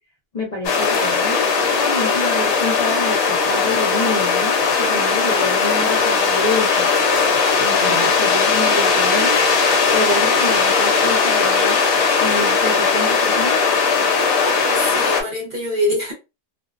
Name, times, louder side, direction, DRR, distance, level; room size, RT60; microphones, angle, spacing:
voice 1, 0.3-6.9 7.6-9.4 9.9-11.8 12.2-13.6, left 2 dB, 50° left, 0.5 m, -27 dB
sound 1, 0.6-15.2, left 5 dB, 70° left, 1.0 m, -18 dB
voice 2, 7.6-8.1 14.4-16.1, equal, 45° right, 0.7 m, -26 dB
2.5 x 2.1 x 2.4 m
omnidirectional pair, 1.5 m